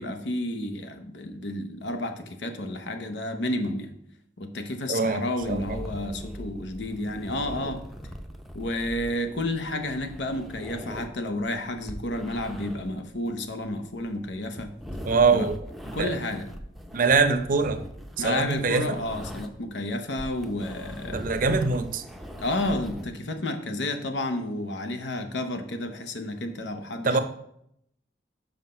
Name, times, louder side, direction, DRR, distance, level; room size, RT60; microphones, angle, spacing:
voice 1, 0.0-3.9 4.4-7.9 8.5-14.7 15.3-15.5 15.9-16.5 18.2-21.2 22.4-27.2, left 1 dB, 90° left, 7 dB, 0.9 m, -31 dB
voice 2, 4.9-5.8 15.0-15.6 15.9-16.2 16.9-17.8 18.2-19.0 21.1-22.0 27.0-27.2, right 4 dB, 50° right, 9 dB, 0.6 m, -23 dB
sound 1, 5.4-19.7 20.0-23.1, equal, ahead, 0.5 m, -40 dB
5.8 x 5.2 x 5.6 m, 0.75 s
head